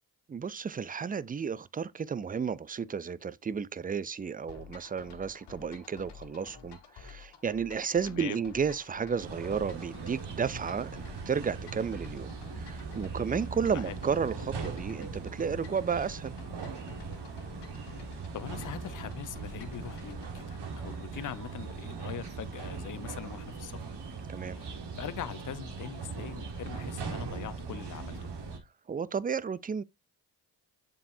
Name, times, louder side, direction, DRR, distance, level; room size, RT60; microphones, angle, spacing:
voice 1, 0.3-12.3 12.6-16.3 24.3-24.6 28.9-29.8, right 6 dB, 20° right, 0.4 m, -32 dB
sound 1, 4.5-20.3, left 6 dB, 70° left, 1.7 m, -51 dB
voice 2, 8.0-8.4 13.7-13.9 18.3-23.9 24.5-28.3, left 10 dB, 45° left, 0.8 m, -42 dB
sound 2, 9.2-28.6, right 4 dB, 70° right, 1.6 m, -40 dB
7.0 x 5.5 x 2.7 m
supercardioid pair, 60°, 43 cm